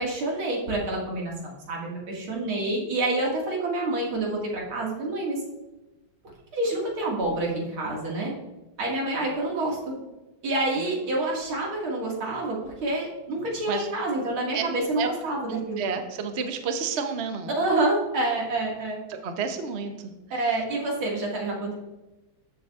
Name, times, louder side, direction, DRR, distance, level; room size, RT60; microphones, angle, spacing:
voice 1, 0.0-5.4 6.5-8.3 8.8-9.9 10.4-15.8 17.6-19.0 20.3-21.8, right 2 dB, 85° right, -2 dB, 2.9 m, -28 dB
voice 2, 15.4-17.5 19.1-20.1, right 6 dB, 50° right, 6 dB, 0.8 m, -30 dB
14.0 x 7.1 x 2.4 m, 1.1 s
omnidirectional pair, 2.2 m